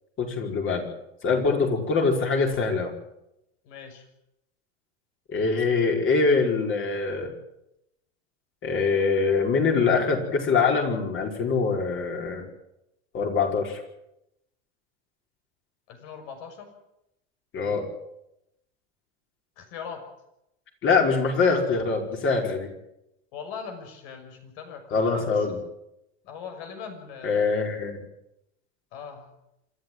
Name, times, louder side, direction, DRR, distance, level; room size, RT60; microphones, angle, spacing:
voice 1, 0.2-0.8 1.2-2.9 5.3-7.3 8.6-12.5 13.1-13.8 17.5-17.9 20.8-22.7 24.9-25.6 27.2-28.0, left 4 dB, 35° left, 2 dB, 5.1 m, -23 dB
voice 2, 3.6-4.1 15.9-16.7 19.6-20.0 23.3-25.3 26.2-27.4 28.9-29.3, left 6 dB, 60° left, 6 dB, 6.2 m, -40 dB
27.0 x 12.5 x 9.4 m, 0.85 s
supercardioid pair, 140°, 37 cm